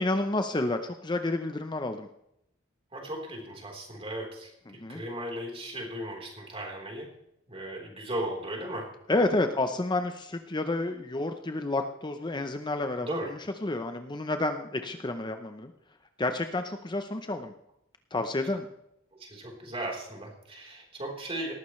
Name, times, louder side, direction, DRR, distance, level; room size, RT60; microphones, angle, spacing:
voice 1, 0.0-2.1 4.7-5.0 9.1-15.7 16.2-17.5 18.1-18.7, left 2 dB, 25° left, 7 dB, 0.7 m, -30 dB
voice 2, 2.9-7.1 7.5-8.9 13.0-13.3 19.2-21.5, right 1 dB, 30° right, 0 dB, 3.8 m, -36 dB
18.5 x 14.5 x 3.2 m, 0.79 s
head